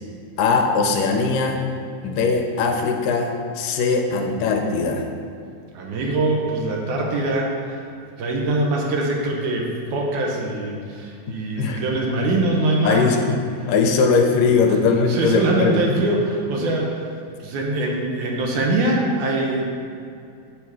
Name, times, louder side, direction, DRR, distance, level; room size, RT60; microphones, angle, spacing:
voice 1, 0.4-1.6 2.0-5.0 11.5-11.8 12.9-13.4 13.7-16.0, left 4 dB, 90° left, 3 dB, 2.4 m, -20 dB
voice 2, 5.7-7.8 8.2-13.1 15.1-16.9 17.4-19.6, right 2 dB, 75° right, -1 dB, 2.4 m, -23 dB
7.1 x 7.0 x 4.7 m, 2.5 s
omnidirectional pair, 3.8 m